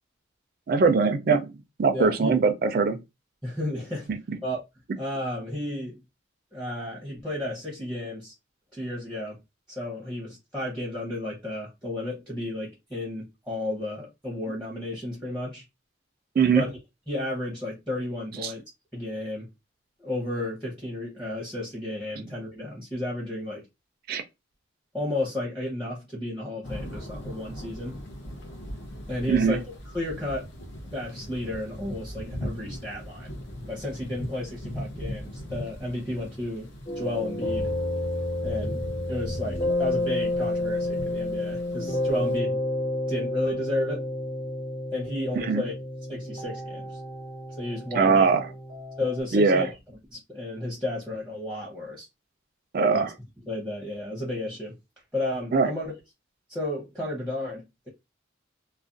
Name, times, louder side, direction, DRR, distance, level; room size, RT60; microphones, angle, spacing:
voice 1, 0.7-1.5 1.8-3.0 16.4-16.7 18.4-18.5 24.1-24.2 29.3-29.6 45.5-45.6 47.9-48.4 49.3-49.7 52.7-53.1 55.5-55.7, right 5 dB, 50° right, 0.3 m, -21 dB
voice 2, 1.9-2.3 3.4-4.1 4.4-4.6 5.0-6.0 6.5-8.3 8.7-9.4 9.7-15.6 16.5-16.7 17.1-18.6 18.9-19.5 20.0-23.7 24.9-28.0 29.1-30.5 30.9-33.3 33.7-36.7 37.0-37.7 38.4-42.6 43.1-44.1 44.9-45.7 46.1-47.0 47.6-48.3 49.0-49.7 50.1-52.1 52.9-53.1 53.5-54.8 55.1-55.9 56.5-57.9, left 1 dB, 5° left, 0.7 m, -32 dB
sound 1, 26.6-42.4, equal, 70° left, 0.7 m, -39 dB
sound 2, 36.9-49.2, left 1 dB, 45° left, 1.1 m, -30 dB
2.4 x 2.1 x 2.5 m
head